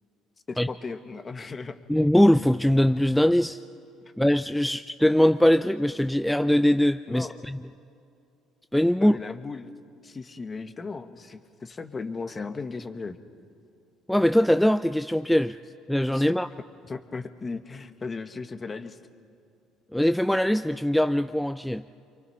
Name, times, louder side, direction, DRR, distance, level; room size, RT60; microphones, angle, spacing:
voice 1, 0.5-1.8 4.0-4.1 7.1-7.4 8.9-9.8 10.0-13.2 16.1-16.3 16.8-19.0, left 4 dB, 30° left, 9 dB, 1.5 m, -36 dB
voice 2, 1.9-3.6 4.2-7.6 8.7-9.1 14.1-15.6 15.9-16.5 19.9-21.8, left 1 dB, 5° left, 10 dB, 0.5 m, -21 dB
29.5 x 24.0 x 5.8 m, 2.5 s
supercardioid pair, 70°, 0 cm